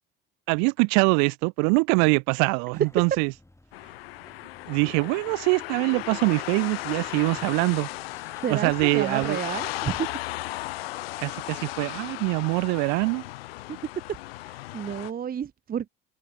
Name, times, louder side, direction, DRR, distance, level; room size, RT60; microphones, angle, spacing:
voice 1, 0.5-3.3 4.7-7.9 8.5-9.4 11.2-13.2, right 38 dB, 70° right, 1.0 m, -23 dB
sound 1, 2.7-9.8, left 1 dB, 10° left, 5.8 m, -56 dB
sound 2, 3.7-15.1, left 18 dB, 80° left, 1.1 m, -36 dB
voice 2, 8.4-10.1 13.7-13.8 14.4-15.9, right 8 dB, 30° right, 0.8 m, -31 dB
open air
hypercardioid pair, 60°, 29 cm